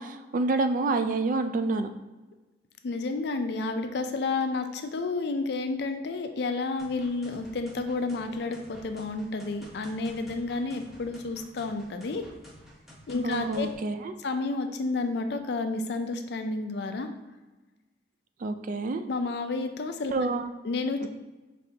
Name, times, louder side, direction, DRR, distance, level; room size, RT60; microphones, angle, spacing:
voice 1, 0.0-1.9 13.2-14.1 18.4-19.0 20.1-20.5 21.0-21.1, right 3 dB, 50° right, 9 dB, 0.3 m, -28 dB
voice 2, 2.8-12.2 13.1-13.7 14.2-17.1 19.1-20.1 20.6-21.1, left 3 dB, 65° left, 7 dB, 0.4 m, -30 dB
sound 1, 6.8-13.7, equal, ahead, 0.9 m, -50 dB
5.3 x 3.2 x 2.8 m, 1.2 s
head